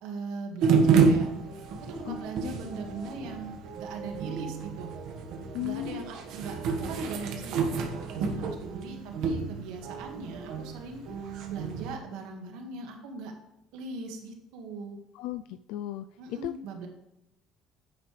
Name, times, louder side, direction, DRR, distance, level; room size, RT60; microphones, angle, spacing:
voice 1, 0.0-1.3 1.8-4.9 5.6-11.0 11.5-13.3 13.7-15.0 16.2-16.9, right 3 dB, 85° right, 3 dB, 1.7 m, -40 dB
sound 1, 0.6-11.9, right 5 dB, 60° right, 1.4 m, -29 dB
voice 2, 5.5-6.1 15.1-16.5, left 15 dB, 75° left, 11 dB, 0.3 m, -36 dB
9.9 x 8.9 x 3.3 m, 0.87 s
cardioid pair, 170°, 0 cm